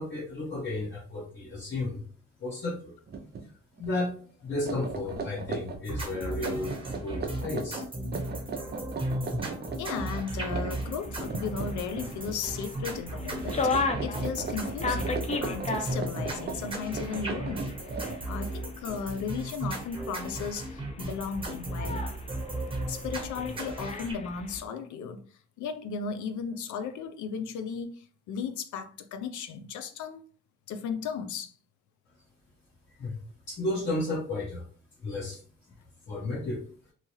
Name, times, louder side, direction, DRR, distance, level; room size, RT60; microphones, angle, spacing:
voice 1, 0.0-2.0 2.4-2.9 3.5-4.1 4.4-6.7 7.0-7.8 33.0-33.2 33.5-34.6 35.0-35.4 36.1-36.6, left 2 dB, 40° left, 1.2 m, -33 dB
sound 1, 3.1-3.4 3.8-4.0 4.5-12.5 12.8-13.2 13.4-18.5, right 4 dB, 35° right, 0.5 m, -37 dB
sound 2, 5.9-24.1, right 1 dB, 15° right, 1.1 m, -36 dB
voice 2, 9.8-17.8 18.3-22.0 22.9-25.2 25.6-30.2 30.7-31.5, left 6 dB, 75° left, 0.5 m, -35 dB
sound 3, 10.7-24.6, left 3 dB, 25° left, 0.5 m, -37 dB
2.8 x 2.3 x 3.0 m
cardioid pair, 90°, 30 cm